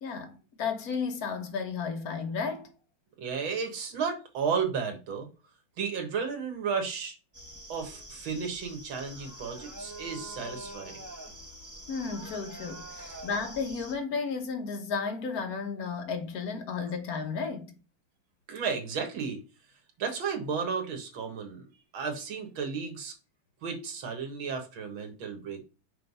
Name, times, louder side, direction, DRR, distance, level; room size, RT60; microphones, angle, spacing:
voice 1, 0.0-2.7 11.9-17.7, left 5 dB, 55° left, 1.4 m, -33 dB
voice 2, 3.2-5.3 5.8-7.2 7.7-11.0 13.0-13.2 18.5-19.4 20.0-21.6 21.9-23.1 23.6-25.6, right 6 dB, 85° right, 2.2 m, -33 dB
sound 1, 7.3-13.9, right 1 dB, 15° right, 0.9 m, -45 dB
5.7 x 3.3 x 5.4 m
omnidirectional pair, 2.1 m